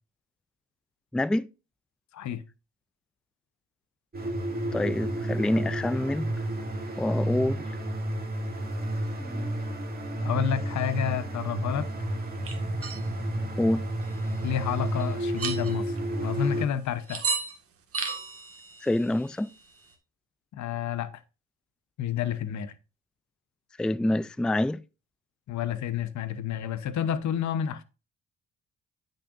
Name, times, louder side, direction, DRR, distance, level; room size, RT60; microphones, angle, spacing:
voice 1, 1.1-1.5 4.7-6.3 7.0-7.6 9.2-9.5 13.6-13.8 18.8-19.5 23.8-24.8, left 1 dB, 5° left, 0.4 m, -27 dB
sound 1, 4.1-16.6, right 1 dB, 30° right, 2.6 m, -31 dB
voice 2, 10.2-11.9 14.4-16.0 16.2-17.2 20.5-21.1 22.0-22.7 25.5-27.8, left 9 dB, 70° left, 1.0 m, -30 dB
sound 2, 12.4-13.1 14.0-14.6 15.0-15.1 15.4-16.0 17.1-17.6 17.9-19.8, right 5 dB, 50° right, 1.9 m, -34 dB
9.8 x 6.6 x 2.6 m
cardioid pair, 85°, 30 cm